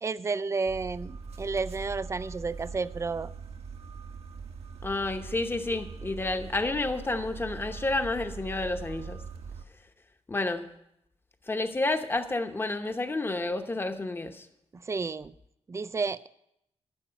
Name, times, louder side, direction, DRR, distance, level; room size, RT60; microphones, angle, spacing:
voice 1, 0.0-3.3 14.7-15.3 15.7-16.3, right 4 dB, 25° right, 16 dB, 0.4 m, -31 dB
sound 1, 0.7-9.7, right 5 dB, 70° right, 1.1 m, -42 dB
voice 2, 4.8-9.2 10.3-10.7 11.5-14.5, left 2 dB, 20° left, 7 dB, 0.9 m, -30 dB
11.5 x 6.1 x 9.0 m, 0.80 s
wide cardioid pair, 130°, 11 cm